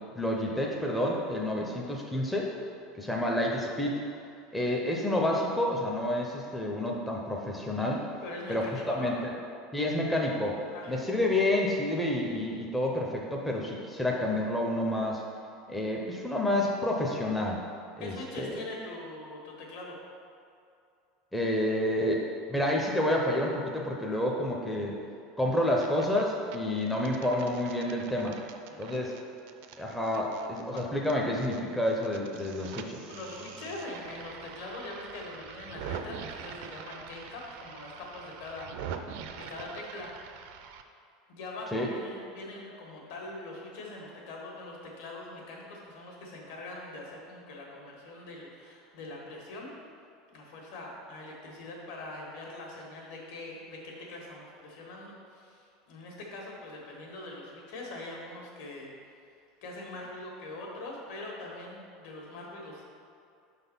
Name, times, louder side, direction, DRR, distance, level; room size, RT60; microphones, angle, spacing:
voice 1, 0.0-2.5 2.9-4.0 4.5-8.0 8.5-8.7 8.9-9.3 9.7-10.6 10.9-15.2 15.7-17.6 18.0-18.6 21.3-25.0 25.4-28.4 28.8-29.1 29.8-33.1 41.7-41.9, left 1 dB, 5° left, -2 dB, 0.4 m, -29 dB
voice 2, 8.2-9.1 10.7-11.0 18.0-20.0 28.7-29.2 30.7-30.8 33.1-38.7 39.3-40.1 41.3-49.7 50.3-58.9 59.6-62.8, left 2 dB, 70° left, -2 dB, 1.5 m, -42 dB
sound 1, 25.5-26.2 26.5-31.6 31.9-40.8, right 7 dB, 60° right, 0.4 m, -44 dB
6.0 x 4.0 x 5.3 m, 2.4 s
supercardioid pair, 175°, 0 cm